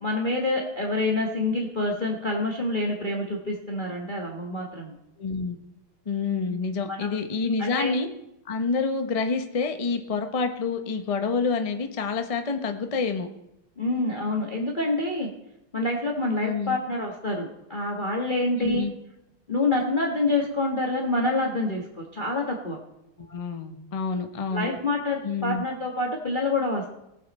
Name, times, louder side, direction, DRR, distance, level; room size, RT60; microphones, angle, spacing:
voice 1, 0.0-4.9 6.9-7.1 7.6-8.0 13.8-15.3 15.7-18.9 19.5-22.8 24.5-26.9, left 2 dB, 25° left, 0 dB, 1.2 m, -27 dB
voice 2, 5.2-5.6 6.1-8.1 8.5-13.3 16.4-16.8 18.6-18.9 23.3-24.7 25.2-25.6, left 4 dB, 60° left, 6 dB, 0.3 m, -27 dB
19.0 x 7.5 x 4.2 m, 0.86 s
omnidirectional pair, 2.4 m